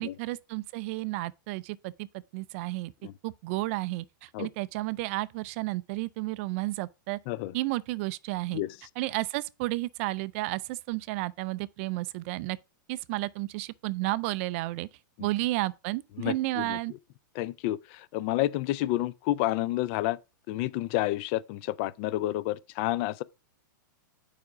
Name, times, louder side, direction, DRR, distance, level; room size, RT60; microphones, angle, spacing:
voice 1, 0.0-2.1 2.3-2.9 3.2-7.2 7.5-8.6 9.0-12.6 12.9-14.9 15.2-16.9, right 19 dB, 40° right, 0.3 m, -32 dB
voice 2, 16.2-16.8 17.4-20.2 20.5-23.2, left 15 dB, 35° left, 0.3 m, -30 dB
7.1 x 4.9 x 4.8 m
hypercardioid pair, 150°, 11 cm